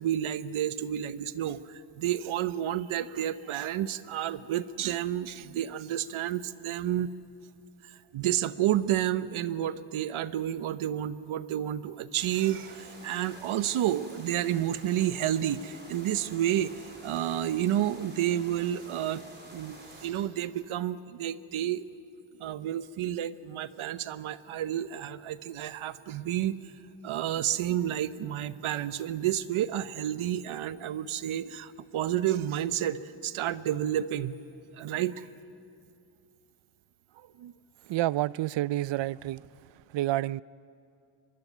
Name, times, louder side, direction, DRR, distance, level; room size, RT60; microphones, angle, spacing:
voice 1, 0.0-7.1 7.8-16.7 17.0-19.2 19.5-21.8 22.4-26.6 27.0-34.4 34.8-35.3 37.2-37.5, right 11 dB, 85° right, 1.0 m, -30 dB
sound 1, 12.1-20.1, right 2 dB, 20° right, 4.3 m, -49 dB
voice 2, 37.9-39.4 39.9-40.4, right 15 dB, 65° right, 0.5 m, -29 dB
23.0 x 23.0 x 9.3 m
cardioid pair, 135°, 48 cm